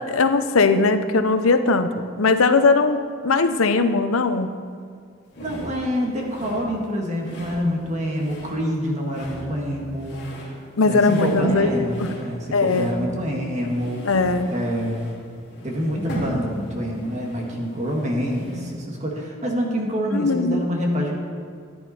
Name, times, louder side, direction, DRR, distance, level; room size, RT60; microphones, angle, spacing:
voice 1, 0.0-4.6 10.8-11.9 12.5-12.9 14.0-14.5 20.1-20.6, left 3 dB, 85° left, 9 dB, 0.7 m, -19 dB
sound 1, 5.3-18.8, equal, 55° left, 3.3 m, -38 dB
voice 2, 5.4-10.5 10.9-14.0 14.5-15.2 15.6-21.1, equal, 35° right, 0 dB, 1.9 m, -26 dB
14.5 x 10.5 x 4.3 m, 2.2 s
head